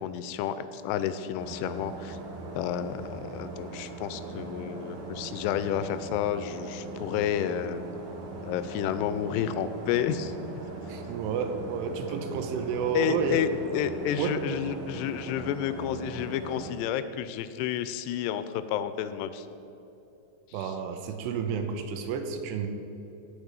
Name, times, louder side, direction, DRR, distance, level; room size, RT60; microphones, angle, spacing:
voice 1, 0.0-2.2 2.5-7.8 8.4-10.3 12.9-19.5 20.5-20.8, left 9 dB, 85° left, 12 dB, 2.7 m, -31 dB
sound 1, 1.4-16.7, right 3 dB, 60° right, 2.7 m, -40 dB
voice 2, 10.9-13.4 14.2-14.3 20.5-22.7, right 6 dB, 85° right, 6 dB, 3.0 m, -30 dB
14.5 x 5.0 x 8.9 m, 2.9 s
omnidirectional pair, 4.9 m